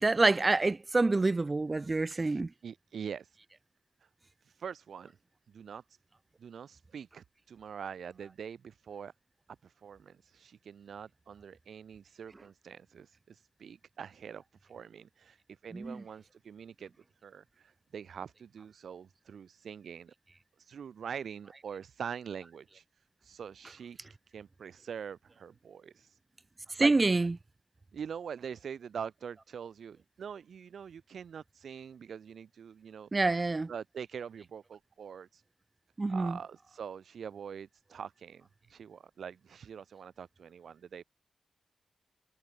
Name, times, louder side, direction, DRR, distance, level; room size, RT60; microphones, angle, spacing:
voice 1, 0.0-2.5 15.7-16.0 26.8-27.4 33.1-33.7 36.0-36.4, right 3 dB, 30° right, 0.8 m, -27 dB
voice 2, 2.1-3.4 4.4-5.2 5.5-5.8 6.4-9.1 9.6-16.9 17.2-20.1 20.6-24.0 24.3-26.2 26.8-27.2 27.9-33.4 33.7-35.4 36.1-41.0, right 7 dB, 80° right, 2.8 m, -44 dB
wide cardioid pair, 100°, 0 cm